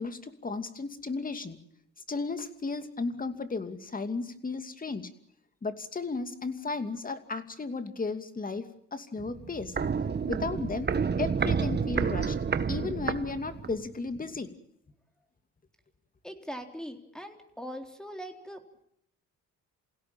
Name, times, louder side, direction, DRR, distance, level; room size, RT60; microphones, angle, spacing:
voice 1, 0.0-1.6 2.1-5.1 5.6-8.6 8.9-9.8 10.3-10.9 11.2-12.4 12.7-14.5, left 3 dB, 30° left, 9 dB, 2.7 m, -34 dB
Walk footsteps, 9.2-13.9 14.2-14.3, right 6 dB, 35° right, 1.4 m, -30 dB
voice 2, 16.2-18.6, equal, ahead, 5 dB, 4.0 m, -41 dB
28.0 x 17.0 x 8.9 m, 0.73 s
cardioid pair, 90°, 30 cm